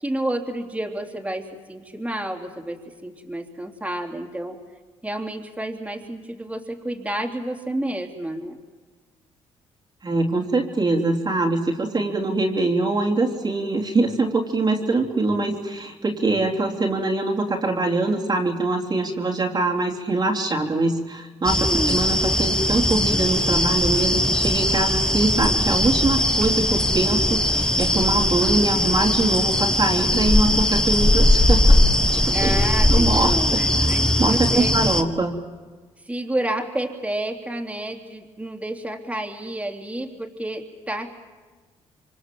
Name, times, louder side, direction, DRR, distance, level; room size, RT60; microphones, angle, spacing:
voice 1, 0.0-4.6 5.0-8.6 21.6-22.0 32.3-34.7 36.0-41.1, right 1 dB, 10° right, 1 dB, 3.4 m, -30 dB
voice 2, 10.0-31.7 32.1-32.5 32.9-35.4, right 2 dB, 35° right, 0 dB, 3.3 m, -23 dB
sound 1, 21.4-35.0, left 1 dB, 5° left, 1.6 m, -20 dB
26.5 x 24.5 x 7.7 m, 1.4 s
cardioid pair, 70°, 12 cm